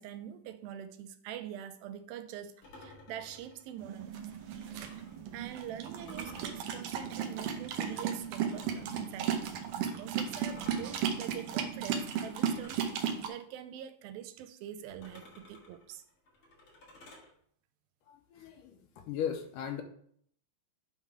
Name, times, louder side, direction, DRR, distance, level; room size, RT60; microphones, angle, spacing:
voice 1, 0.0-4.2 5.3-9.5 9.8-16.0, right 10 dB, 90° right, 2.5 m, -44 dB
sound 1, 2.6-5.2 5.9-8.9 10.4-12.9 14.9-17.3, left 1 dB, 45° left, 2.3 m, -55 dB
sound 2, 3.8-13.3, right 8 dB, 75° right, 2.1 m, -35 dB
voice 2, 18.1-18.8 19.1-19.8, left 8 dB, 75° left, 2.2 m, -37 dB
9.2 x 3.7 x 4.8 m
omnidirectional pair, 4.1 m